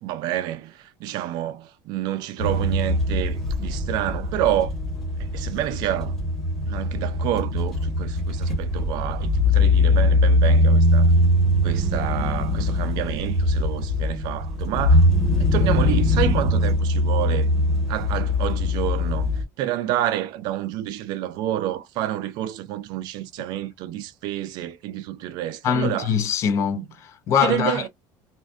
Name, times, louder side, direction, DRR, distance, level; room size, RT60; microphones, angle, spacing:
voice 1, 0.0-4.7 5.2-6.2 6.6-11.1 11.6-15.1 15.4-17.5 17.9-19.3 19.6-26.1 26.7-26.9 27.4-27.9, right 12 dB, 45° right, 0.4 m, -28 dB
sound 1, 2.4-19.4, left 1 dB, ahead, 1.0 m, -21 dB
voice 2, 25.6-27.9, left 7 dB, 30° left, 0.4 m, -23 dB
2.5 x 2.4 x 2.4 m
cardioid pair, 180°, 10 cm